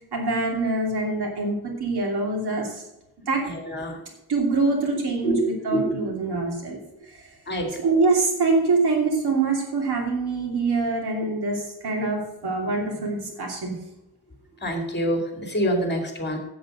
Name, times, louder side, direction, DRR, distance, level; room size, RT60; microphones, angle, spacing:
voice 1, 0.1-2.8 3.3-3.4 4.3-6.8 7.1-7.2 7.8-13.8, right 3 dB, 90° right, 1 dB, 2.9 m, -24 dB
voice 2, 3.5-4.0 5.2-5.5 5.7-6.1 7.5-7.8 14.6-16.4, equal, 30° left, 3 dB, 2.5 m, -26 dB
8.0 x 7.8 x 6.5 m, 0.92 s
wide cardioid pair, 130°, 38 cm